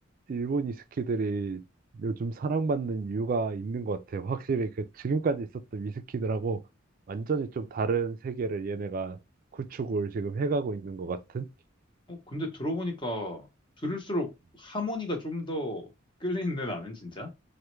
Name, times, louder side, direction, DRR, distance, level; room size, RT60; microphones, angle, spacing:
voice 1, 0.3-1.6 1.9-6.6 7.1-9.2 9.5-11.5, right 4 dB, 45° right, 0.3 m, -30 dB
voice 2, 12.1-13.5 13.8-14.3 14.6-15.9 16.2-17.3, left 1 dB, 25° left, 0.8 m, -32 dB
3.4 x 2.1 x 3.0 m
head